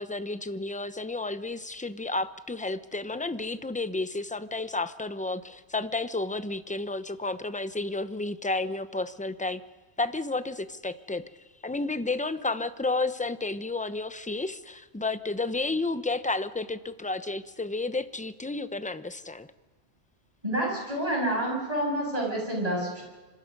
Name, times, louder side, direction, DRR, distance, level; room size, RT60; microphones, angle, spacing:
voice 1, 0.0-9.6 10.0-11.2 11.6-19.5, left 2 dB, 10° left, 12 dB, 0.7 m, -31 dB
voice 2, 20.4-23.0, right 1 dB, 35° right, -2 dB, 7.7 m, -28 dB
26.5 x 25.5 x 5.4 m, 1.3 s
omnidirectional pair, 1.1 m